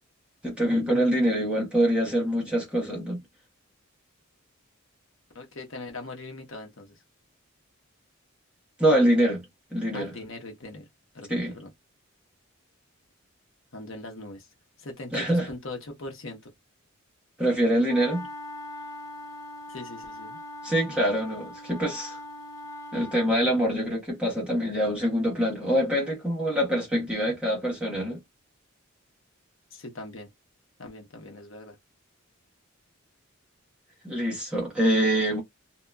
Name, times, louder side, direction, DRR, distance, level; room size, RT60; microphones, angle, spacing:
voice 1, 0.4-3.2 8.8-9.4 9.7-10.1 11.3-11.5 15.1-15.5 17.4-18.3 20.6-22.2 22.9-28.2 34.0-35.4, equal, 5° right, 1.1 m, -25 dB
voice 2, 5.3-7.0 9.9-10.9 11.1-11.7 13.7-14.5 14.8-16.5 19.7-20.4 29.7-30.3 30.8-31.8, left 2 dB, 65° left, 0.9 m, -40 dB
sound 1, 17.9-23.4, left 2 dB, 15° left, 0.4 m, -41 dB
2.8 x 2.3 x 2.3 m
head